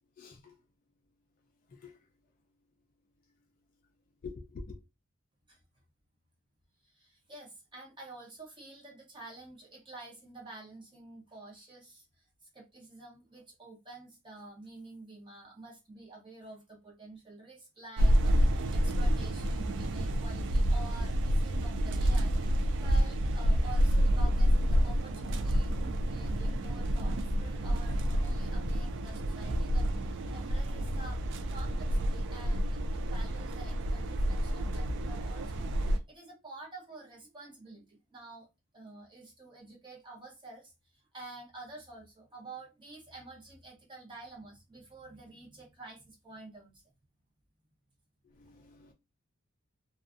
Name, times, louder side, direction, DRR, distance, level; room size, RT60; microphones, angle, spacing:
voice 1, 0.2-0.6 1.7-2.0 4.2-4.8 48.2-48.9, left 4 dB, 40° left, 0.4 m, -46 dB
voice 2, 6.8-31.2 31.5-38.5 38.7-46.8, right 2 dB, 20° right, 0.7 m, -49 dB
sound 1, 18.0-36.0, equal, 55° right, 0.3 m, -29 dB
2.6 x 2.2 x 2.4 m
head